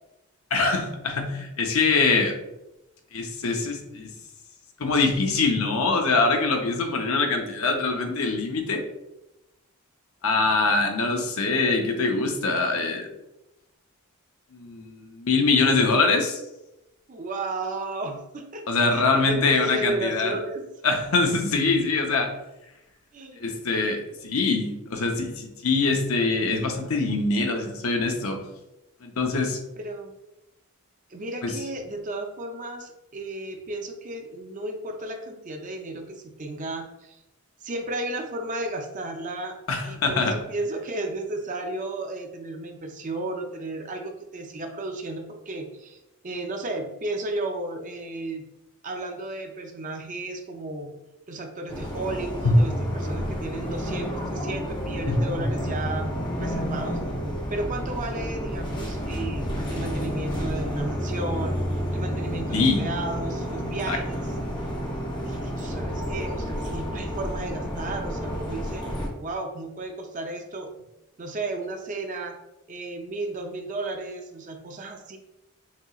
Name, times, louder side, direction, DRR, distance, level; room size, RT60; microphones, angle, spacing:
voice 1, 0.5-2.3 3.1-4.1 4.8-8.8 10.2-13.1 14.5-16.4 18.7-20.4 20.8-22.3 23.4-28.4 29.0-29.6 31.4-31.5 39.7-40.3 52.4-52.6 55.1-55.2 62.5-62.8 63.9-64.0, left 3 dB, 70° left, 3 dB, 0.7 m, -23 dB
voice 2, 17.1-18.7 18.9-20.7 23.1-23.5 29.8-30.1 31.1-37.2 37.6-39.6 39.8-48.4 48.8-50.9 51.3-56.1 56.4-57.0 57.5-61.6 61.9-64.3 65.2-68.9 69.2-70.7 71.2-72.4 72.7-75.2, right 2 dB, 35° right, 4 dB, 0.5 m, -33 dB
sound 1, 51.7-69.1, equal, 20° left, 0.8 m, -30 dB
5.9 x 2.9 x 2.3 m, 0.93 s
head